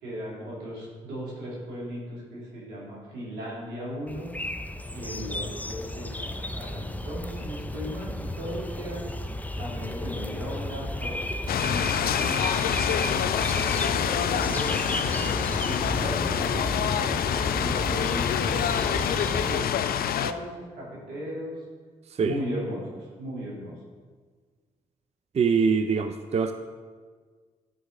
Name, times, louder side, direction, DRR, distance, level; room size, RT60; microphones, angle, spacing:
voice 1, 0.0-4.3 4.9-9.1 9.6-15.3 15.6-17.2 17.6-21.6 22.2-23.8, equal, 85° right, -4 dB, 2.1 m, -37 dB
sound 1, 4.1-19.6, left 1 dB, 10° left, 0.6 m, -33 dB
sound 2, 11.5-20.3, left 9 dB, 65° left, 0.4 m, -26 dB
voice 2, 25.3-26.5, right 5 dB, 40° right, 8 dB, 0.5 m, -23 dB
10.5 x 4.6 x 3.7 m, 1.5 s
hypercardioid pair, 45°, 17 cm